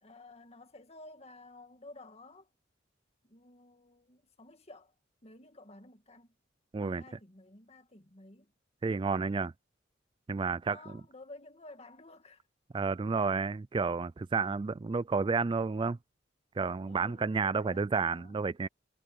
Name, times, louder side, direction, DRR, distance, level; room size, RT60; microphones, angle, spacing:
voice 1, 0.0-2.5 3.2-4.9 5.2-6.3 6.8-8.5 10.6-12.4 16.9-18.4, left 2 dB, 35° left, 2.0 m, -53 dB
voice 2, 8.8-9.5 10.3-10.8 12.7-16.0 16.6-18.7, right 4 dB, 25° right, 0.3 m, -31 dB
head